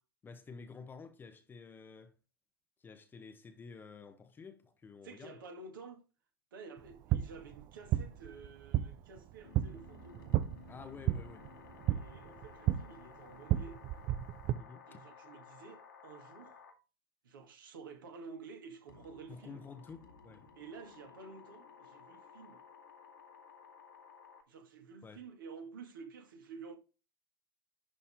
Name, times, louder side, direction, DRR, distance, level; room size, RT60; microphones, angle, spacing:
voice 1, 0.2-2.1 2.8-5.4 10.7-11.5 14.6-15.0 19.3-20.5 25.0-25.2, left 5 dB, 15° left, 1.1 m, -50 dB
voice 2, 5.0-6.0 6.5-10.3 11.9-13.8 14.9-16.6 17.2-19.6 20.6-22.6 24.5-26.8, right 4 dB, 60° right, 2.2 m, -51 dB
sound 1, 6.8-14.5, right 13 dB, 30° right, 0.6 m, -34 dB
sound 2, 9.4-16.8 18.9-24.4, left 6 dB, 60° left, 2.2 m, -56 dB
11.5 x 4.2 x 3.7 m
figure-of-eight pair, 95°, 12 cm